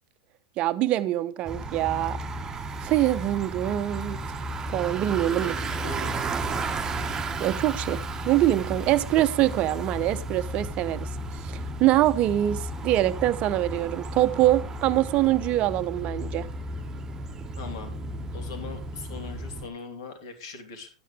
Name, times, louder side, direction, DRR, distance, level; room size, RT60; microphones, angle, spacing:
voice 1, 0.6-2.2 2.8-4.2 4.7-5.5 7.4-11.1 11.4-16.5, right 14 dB, 40° right, 0.9 m, -24 dB
Bicycle, 1.4-19.7, right 2 dB, 20° right, 1.3 m, -33 dB
voice 2, 5.3-6.2 17.6-17.9 18.3-20.9, left 4 dB, 60° left, 3.4 m, -40 dB
13.0 x 9.4 x 3.5 m
figure-of-eight pair, 95°, 3 cm